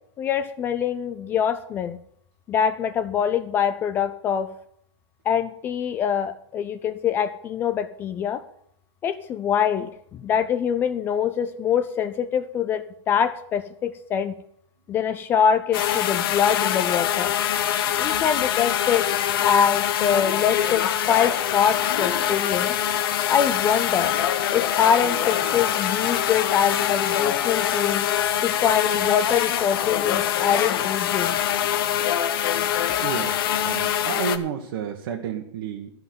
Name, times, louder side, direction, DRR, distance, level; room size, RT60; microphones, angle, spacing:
voice 1, 0.2-2.0 2.5-4.5 5.3-8.4 9.0-14.3 14.9-17.3 18.0-19.1 19.4-22.7 23.3-24.1 24.5-28.0 28.4-31.4, left 8 dB, 15° left, 11 dB, 0.4 m, -24 dB
sound 1, 15.7-34.4, left 10 dB, 50° left, 1.1 m, -24 dB
voice 2, 33.0-33.3 33.6-35.9, right 7 dB, 50° right, 1 dB, 1.4 m, -30 dB
13.5 x 5.5 x 9.4 m, 0.70 s
supercardioid pair, 170°, 15 cm